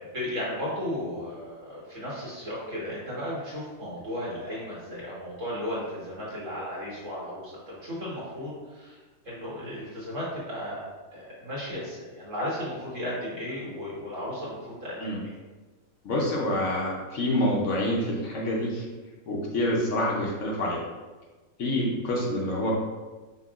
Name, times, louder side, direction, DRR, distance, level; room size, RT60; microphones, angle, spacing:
voice 1, 0.1-9.0 9.3-10.8 11.1-15.4 21.7-21.9, left 1 dB, 60° right, -7 dB, 1.8 m, -35 dB
voice 2, 16.0-18.9 19.3-20.8 21.6-22.7, left 1 dB, 65° left, -3 dB, 0.9 m, -27 dB
5.3 x 2.8 x 2.4 m, 1.3 s
omnidirectional pair, 1.5 m